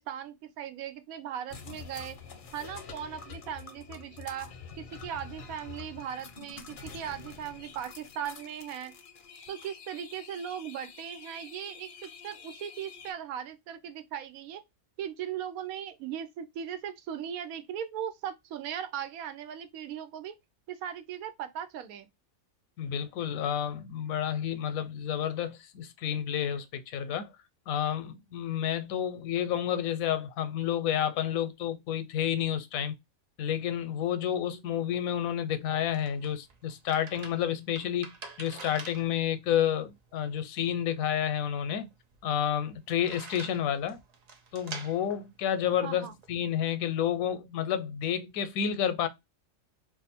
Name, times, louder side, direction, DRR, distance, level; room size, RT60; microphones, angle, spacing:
voice 1, 0.0-2.2 2.5-4.5 4.8-8.9 9.5-14.6 15.0-20.4 20.7-22.1 45.8-46.1, right 9 dB, 85° right, 1.1 m, -38 dB
sound 1, 1.5-13.1, left 6 dB, 55° left, 0.6 m, -47 dB
voice 2, 22.8-27.3 27.7-32.9 33.4-38.1 38.4-41.9 42.2-44.0 44.5-49.1, left 9 dB, 80° left, 1.0 m, -30 dB
sound 2, 35.5-46.4, right 4 dB, 65° right, 0.4 m, -48 dB
2.6 x 2.4 x 4.1 m
omnidirectional pair, 1.5 m